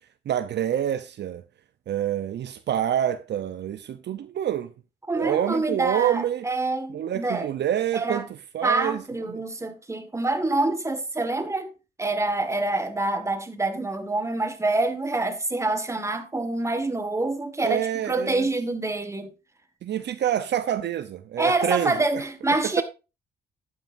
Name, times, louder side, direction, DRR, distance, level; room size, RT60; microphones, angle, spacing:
voice 1, 0.3-1.4 1.9-4.7 5.1-6.4 6.9-8.3 8.5-9.0 9.3-9.4 17.6-18.5 19.8-21.9 22.6-22.8, right 10 dB, 60° right, 0.7 m, -27 dB
voice 2, 5.1-7.5 7.9-8.3 8.6-11.7 12.0-19.3 21.4-22.8, right 2 dB, 15° right, 1.7 m, -26 dB
12.0 x 8.9 x 2.6 m
cardioid pair, 90°, 20 cm